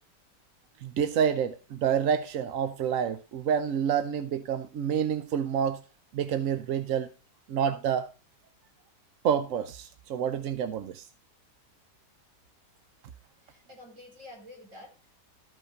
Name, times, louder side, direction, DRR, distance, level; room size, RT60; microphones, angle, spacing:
voice 1, 0.8-5.8 6.1-7.1 7.5-8.1 9.2-11.0, right 8 dB, 60° right, 0.9 m, -28 dB
voice 2, 13.4-15.1, left 1 dB, 45° right, 4.1 m, -49 dB
13.5 x 5.5 x 5.0 m
omnidirectional pair, 1.9 m